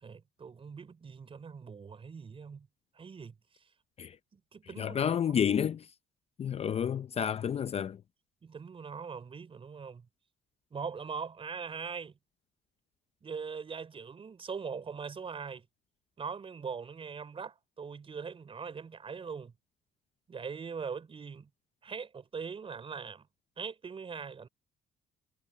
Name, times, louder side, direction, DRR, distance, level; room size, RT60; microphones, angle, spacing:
voice 1, 0.0-2.7 2.9-3.3 4.3-5.4 8.4-10.1 10.7-12.1 13.2-15.7 16.2-19.5 20.3-21.5 21.8-23.3 23.6-24.5, right 5 dB, 35° right, 4.8 m, -41 dB
voice 2, 4.8-5.9 6.4-8.0, left 8 dB, 35° left, 0.6 m, -30 dB
cardioid pair, 110°, 17 cm